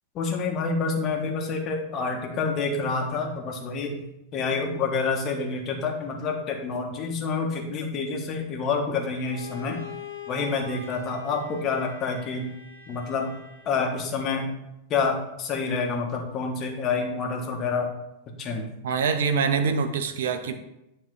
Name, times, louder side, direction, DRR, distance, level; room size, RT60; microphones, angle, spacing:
voice 1, 0.1-4.0 4.3-9.8 10.3-12.5 12.9-13.3 13.6-14.5 14.9-17.9 18.4-18.7, left 4 dB, 35° left, 2 dB, 1.3 m, -28 dB
Bowed string instrument, 9.1-13.9, left 4 dB, 85° left, 1.6 m, -43 dB
voice 2, 18.8-20.5, right 5 dB, 60° right, 8 dB, 0.6 m, -24 dB
9.4 x 3.2 x 4.8 m, 0.89 s
figure-of-eight pair, 90°, 0 cm